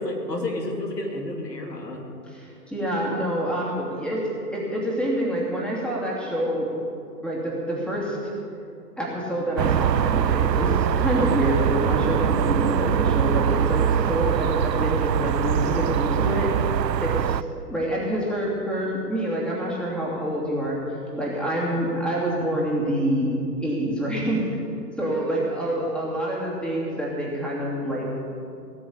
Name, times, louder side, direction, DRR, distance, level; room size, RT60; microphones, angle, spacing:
voice 1, 0.0-2.0, left 1 dB, 80° left, 2 dB, 2.6 m, -30 dB
voice 2, 2.3-6.7 7.2-8.2 9.0-16.5 17.0-20.8 21.2-23.3 23.6-24.5 25.0-28.1, right 1 dB, ahead, -4 dB, 3.0 m, -27 dB
sound 1, 9.6-17.4, right 8 dB, 85° right, 0.6 m, -23 dB
18.0 x 6.9 x 8.6 m, 2.6 s
figure-of-eight pair, 120°, 49 cm